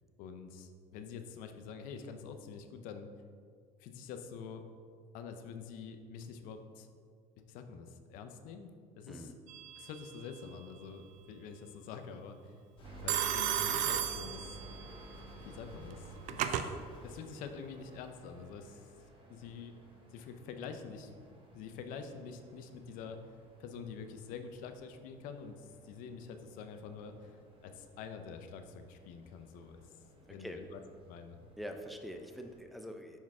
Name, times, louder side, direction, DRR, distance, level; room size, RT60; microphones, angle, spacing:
voice 1, 0.2-3.1 3.8-4.6 5.1-6.9 7.5-8.7 9.0-9.3 9.8-12.5 13.0-14.6 15.4-16.7 17.0-18.8 19.3-19.7 20.1-21.1 21.5-29.8 30.3-30.8 31.1-31.4, left 6 dB, 65° left, 7 dB, 0.6 m, -46 dB
Telephone, 9.5-10.0 13.1-14.9 15.9-16.7, right 10 dB, 55° right, 0.4 m, -34 dB
sound 1, 12.8-17.2, left 2 dB, 35° left, 1.4 m, -55 dB
Ambience Urban Night Plaça Comerç, 12.8-32.6, right 2 dB, 35° right, 1.1 m, -55 dB
voice 2, 30.2-30.6 31.6-33.2, equal, ahead, 5 dB, 0.5 m, -45 dB
5.9 x 4.5 x 3.6 m, 2.1 s
supercardioid pair, 110°, 15 cm